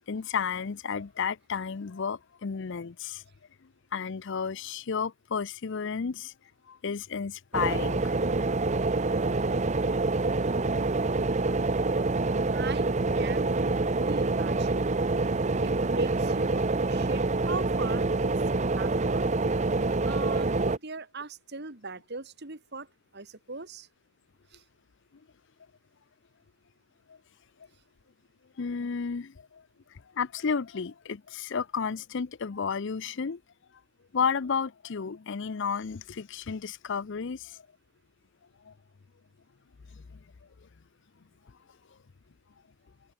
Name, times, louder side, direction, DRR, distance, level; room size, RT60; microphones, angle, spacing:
voice 1, 0.1-3.2 3.9-6.3 6.7-8.1 11.5-11.6 28.6-29.6 30.2-33.4 34.1-37.6 38.7-38.8, left 6 dB, 55° left, 0.5 m, -32 dB
sound 1, 7.5-20.8, right 3 dB, 30° right, 0.7 m, -26 dB
voice 2, 12.5-12.9 13.2-13.5 13.8-15.2 15.6-18.4 18.8-19.3 19.8-22.9 23.1-23.9 24.5-24.6, right 3 dB, 50° right, 2.0 m, -39 dB
open air
head